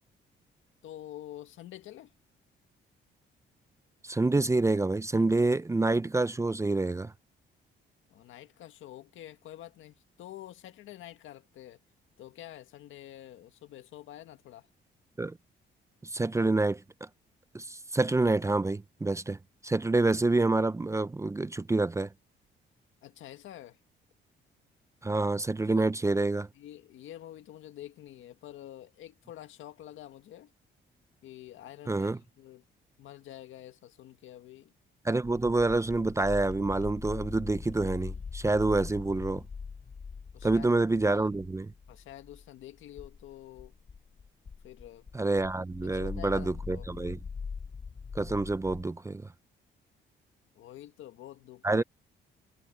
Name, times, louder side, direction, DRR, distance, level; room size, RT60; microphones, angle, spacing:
voice 1, 0.8-2.1 8.1-11.8 12.2-14.7 23.0-23.8 25.6-25.9 26.5-30.5 31.2-32.6 33.0-34.7 40.3-40.7 41.0-41.3 41.9-43.7 44.6-45.1 45.8-46.9 50.6-51.8, left 13 dB, 80° left, 1.8 m, -47 dB
voice 2, 4.0-7.1 15.2-15.4 16.0-16.8 17.5-19.4 19.6-22.1 25.0-26.5 31.9-32.2 35.0-39.4 40.4-41.7 45.1-47.2 48.1-49.3 51.6-51.8, right 2 dB, 15° right, 0.5 m, -27 dB
sound 1, 35.3-48.8, left 5 dB, 40° left, 4.7 m, -42 dB
cardioid pair, 90°, 20 cm